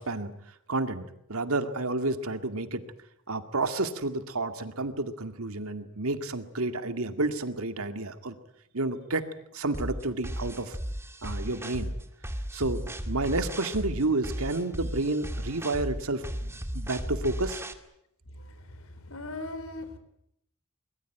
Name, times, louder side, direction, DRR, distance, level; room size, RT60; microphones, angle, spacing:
voice 1, 0.0-2.8 3.3-8.4 8.7-10.8 11.2-11.9 12.5-17.6, right 2 dB, 85° right, 9 dB, 2.2 m, -30 dB
sound 1, 9.7-17.7, equal, 10° right, 2.0 m, -35 dB
voice 2, 18.4-20.0, left 2 dB, 80° left, 11 dB, 4.4 m, -40 dB
24.5 x 22.0 x 9.3 m, 0.76 s
head